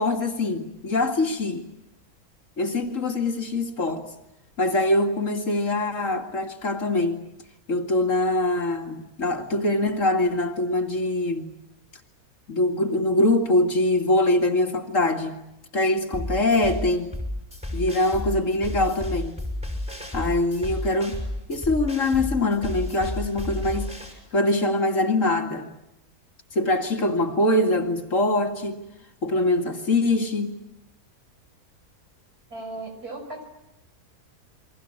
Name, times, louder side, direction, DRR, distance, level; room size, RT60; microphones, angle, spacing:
voice 1, 0.0-1.6 2.6-4.0 4.6-7.2 7.7-11.4 12.5-15.4 15.7-17.1 17.7-19.4 20.1-21.2 21.5-23.9 24.3-25.7 26.5-28.8 29.2-30.6, left 2 dB, 55° left, 4 dB, 2.5 m, -23 dB
sound 1, 16.1-24.1, left 1 dB, 5° right, 6.2 m, -32 dB
voice 2, 32.5-33.5, right 2 dB, 80° right, 5 dB, 6.0 m, -36 dB
29.0 x 23.0 x 8.6 m, 0.90 s
omnidirectional pair, 1.6 m